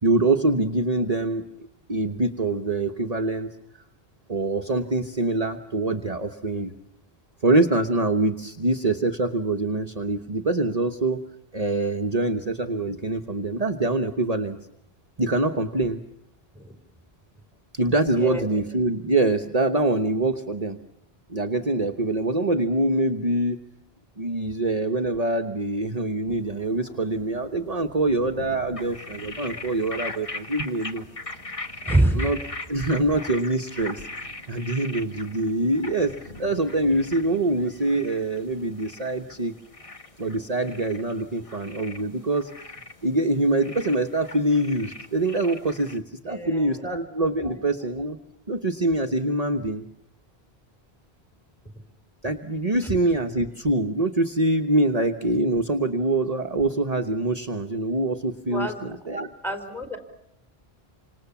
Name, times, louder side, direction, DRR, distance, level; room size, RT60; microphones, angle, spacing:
voice 1, 0.0-1.4 1.9-3.5 4.3-6.7 7.4-11.2 11.5-14.6 15.2-16.0 17.7-20.8 21.3-23.6 24.2-31.0 31.8-32.4 32.7-39.5 40.2-48.2 48.5-49.8 52.2-59.3, right 2 dB, 40° right, 5 dB, 1.2 m, -24 dB
voice 2, 18.2-18.6 31.9-32.3 46.2-47.0 47.4-47.5 52.8-53.0 58.5-59.0 59.4-60.0, right 1 dB, ahead, 7 dB, 4.6 m, -26 dB
sound 1, 26.3-39.4, left 1 dB, 75° left, 6.8 m, -48 dB
sound 2, 28.8-46.0, left 2 dB, 35° left, 1.6 m, -40 dB
29.0 x 26.5 x 7.2 m, 0.80 s
omnidirectional pair, 1.1 m